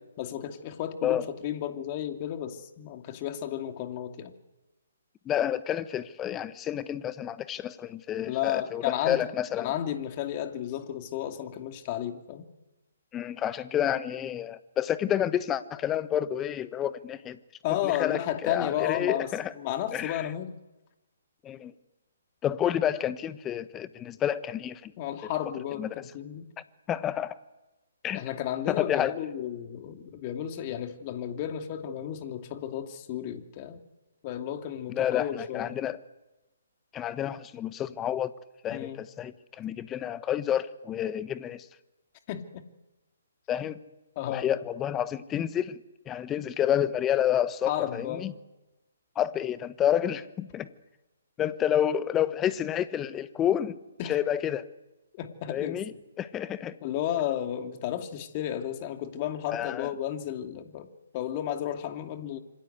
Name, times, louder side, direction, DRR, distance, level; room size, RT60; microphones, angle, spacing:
voice 1, 0.2-4.3 8.3-9.2 9.6-12.5 17.6-20.5 25.0-26.5 28.1-33.8 34.2-35.8 38.7-39.0 42.3-42.6 44.2-44.5 47.7-48.3 54.0-54.1 55.2-55.8 56.8-60.9 61.1-62.4, left 11 dB, 35° left, 6 dB, 2.7 m, -33 dB
voice 2, 5.2-9.7 13.1-17.4 17.8-19.5 19.9-20.3 21.4-21.7 22.4-24.9 25.8-25.9 26.9-27.4 28.0-28.2 28.7-29.2 34.9-36.0 36.9-38.3 38.6-41.7 43.5-43.8 44.3-45.8 46.1-48.3 49.1-50.7 51.4-53.8 54.0-54.6 55.5-56.8 59.5-59.9, left 10 dB, 15° left, 14 dB, 1.3 m, -29 dB
27.0 x 25.5 x 8.2 m, 1.1 s
figure-of-eight pair, 135°, 0 cm